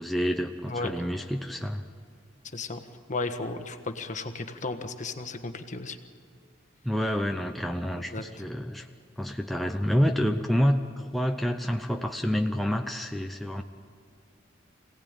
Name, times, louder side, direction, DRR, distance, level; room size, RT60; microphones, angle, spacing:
voice 1, 0.0-1.9 6.8-8.9 9.2-13.6, equal, ahead, 3 dB, 0.6 m, -28 dB
voice 2, 2.5-2.8 3.1-6.0 8.1-8.2, left 3 dB, 40° left, 7 dB, 1.4 m, -34 dB
25.5 x 17.5 x 9.0 m, 2.2 s
head